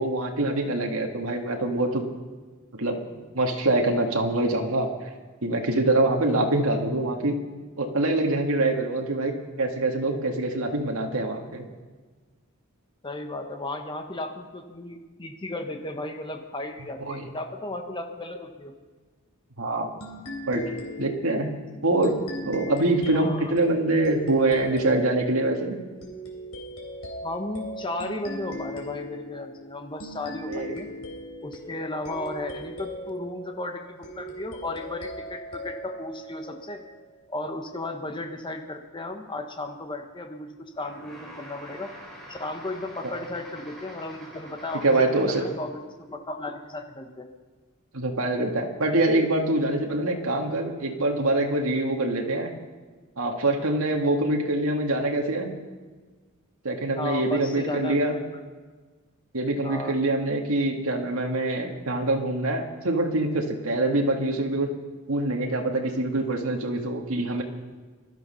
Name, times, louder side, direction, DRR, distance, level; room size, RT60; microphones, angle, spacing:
voice 1, 0.0-2.0 2.7-4.9 5.4-7.4 7.8-11.6 17.1-17.3 19.6-19.9 20.5-20.7 21.0-21.5 21.8-22.2 22.5-25.8 30.5-30.7 43.0-43.1 44.8-45.4 47.9-52.5 53.2-55.5 56.6-58.2 59.3-64.7 65.1-67.4, right 2 dB, 75° right, 2 dB, 1.9 m, -25 dB
voice 2, 13.0-18.7 21.7-21.8 23.1-23.6 27.2-30.9 31.4-36.8 37.3-41.9 42.3-47.3 56.9-58.4 59.6-60.0, left 2 dB, 20° left, 4 dB, 1.2 m, -35 dB
sound 1, 20.0-37.2, equal, 85° left, 3.5 m, -39 dB
sound 2, 40.7-45.7, equal, ahead, 5.4 m, -45 dB
20.0 x 12.5 x 5.7 m, 1.4 s
head